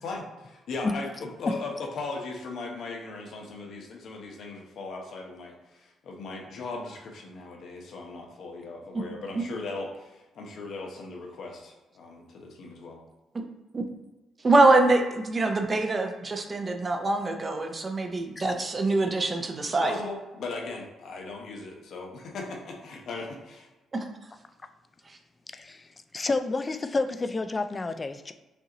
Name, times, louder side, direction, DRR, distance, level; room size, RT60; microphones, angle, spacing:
voice 1, 0.0-13.0 19.7-23.7, left 3 dB, 65° left, 0 dB, 1.0 m, -38 dB
voice 2, 14.4-20.0 23.9-24.1 25.1-25.2, right 2 dB, 30° right, 4 dB, 0.7 m, -24 dB
voice 3, 25.5-25.9 26.1-28.3, left 3 dB, 30° left, 9 dB, 0.4 m, -29 dB
5.6 x 2.5 x 2.9 m, 1.1 s
cardioid pair, 90°, 0 cm